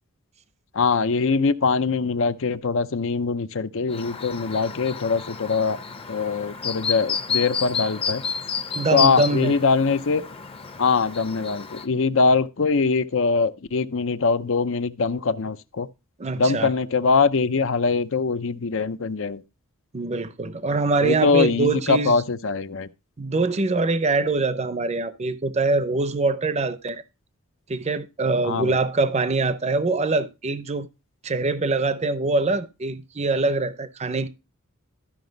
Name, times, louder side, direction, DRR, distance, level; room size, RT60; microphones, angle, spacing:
voice 1, 0.7-5.8 6.1-8.2 8.9-10.2 10.8-15.9 16.4-19.4 21.0-22.9 28.4-28.8, left 4 dB, 65° left, 0.7 m, -22 dB
Chirp tweet, 3.9-11.9, left 6 dB, 25° left, 0.7 m, -31 dB
voice 2, 8.7-9.5 16.2-16.7 19.9-22.2 23.2-27.0 27.7-30.9 31.2-34.3, right 3 dB, 30° right, 0.6 m, -24 dB
13.0 x 5.9 x 3.9 m
head